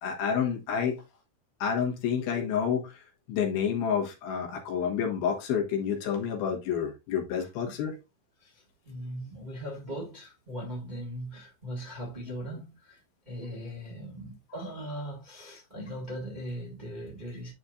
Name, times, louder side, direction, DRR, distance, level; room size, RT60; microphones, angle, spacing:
voice 1, 0.0-1.0 1.6-2.9 3.3-7.9, left 7 dB, 80° left, 3.3 m, -29 dB
voice 2, 8.4-17.5, equal, 20° right, 1.1 m, -39 dB
10.5 x 4.2 x 2.6 m
omnidirectional pair, 4.3 m